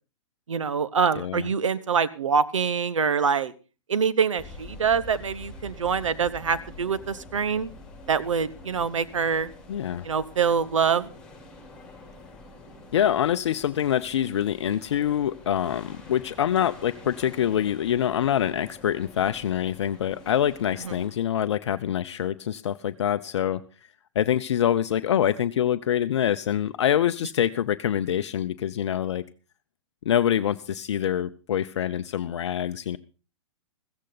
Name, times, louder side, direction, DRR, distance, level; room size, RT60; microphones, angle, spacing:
voice 1, 0.5-3.5 3.9-7.7 8.1-9.5 10.0-11.1, right 6 dB, 75° right, 14 dB, 1.0 m, -25 dB
voice 2, 1.1-1.5 9.7-10.1 12.9-23.6 24.1-29.2 30.1-33.0, left 10 dB, 60° left, 11 dB, 0.6 m, -25 dB
sound 1, 4.4-21.1, left 2 dB, 5° left, 5.6 m, -46 dB
15.5 x 14.5 x 4.0 m, 0.34 s
figure-of-eight pair, 115°, 16 cm